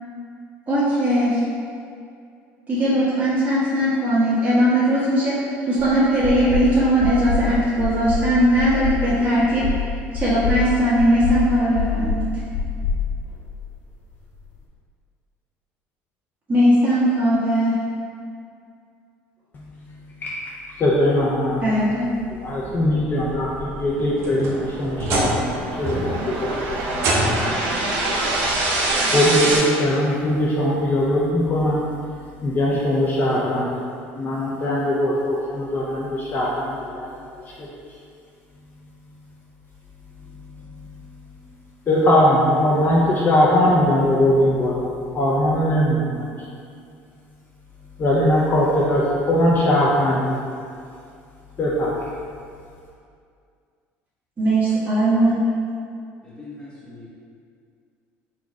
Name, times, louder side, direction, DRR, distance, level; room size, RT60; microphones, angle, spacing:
voice 1, 0.7-1.4 2.7-5.4 5.7-9.7 10.1-12.4 16.5-17.8 21.6-22.1 54.4-55.4, right 1 dB, 25° right, -11 dB, 1.4 m, -19 dB
sound 1, 5.8-5.9 6.2-6.7 7.0-7.4 7.8-8.2 8.6-9.0 9.4-9.8 10.1-10.6 11.0-11.4 11.7-12.2 12.5-13.7, left 5 dB, 60° left, 1.1 m, -25 dB
voice 2, 19.5-20.0 20.2-20.3 20.8-21.6 22.3-27.5 29.0-31.8 32.4-33.7 34.1-37.2 37.6-37.7 40.8-40.9 41.9-46.3 48.0-50.4 51.6-51.9, left 1 dB, 35° left, -5 dB, 0.6 m, -21 dB
sound 2, 22.7-29.6, right 2 dB, 85° right, 0.9 m, -25 dB
sound 3, 23.9-25.5 25.8-26.3 27.0-27.7 28.8-28.9 29.6-29.7 31.2-31.3, right 1 dB, 55° right, 0.9 m, -25 dB
voice 3, 56.2-57.1, left 3 dB, 10° left, -10 dB, 1.0 m, -41 dB
4.0 x 2.4 x 4.6 m, 2.3 s
supercardioid pair, 105°, 6 cm